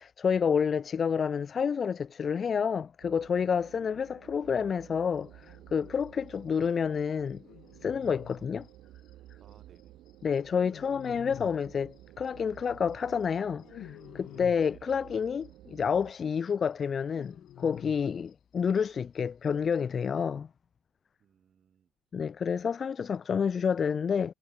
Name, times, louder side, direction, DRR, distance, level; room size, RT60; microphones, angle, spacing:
voice 1, 0.0-7.4 7.8-8.7 10.2-20.5 22.1-24.3, left 6 dB, 40° left, 0.3 m, -29 dB
sound 1, 3.0-16.1, right 15 dB, 65° right, 2.3 m, -53 dB
sound 2, 5.4-6.0 6.3-6.4 6.6-6.7 7.0-7.1 7.3-9.8 10.1-12.3 12.6-15.5 15.8-15.9 16.2-18.9 19.2-19.3 19.4-20.2, left 12 dB, 60° left, 1.0 m, -49 dB
voice 2, 9.4-10.0 14.3-14.6 21.2-21.9 22.5-22.6, right 8 dB, 45° right, 2.7 m, -60 dB
hypercardioid pair, 55°, 0 cm